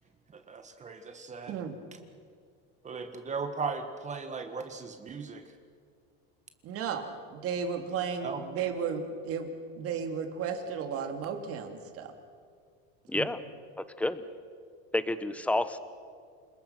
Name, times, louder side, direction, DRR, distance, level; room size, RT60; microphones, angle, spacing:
voice 1, 0.3-1.5 2.8-5.4 8.2-8.4, right 4 dB, 25° right, 7 dB, 1.8 m, -37 dB
voice 2, 1.5-1.8 6.6-12.1 13.1-13.3, right 6 dB, 50° right, 5 dB, 2.9 m, -34 dB
voice 3, 13.1-13.4 13.8-14.2 14.9-15.8, left 2 dB, 5° left, 12 dB, 1.1 m, -29 dB
28.5 x 20.5 x 6.0 m, 2.1 s
supercardioid pair, 130°, 31 cm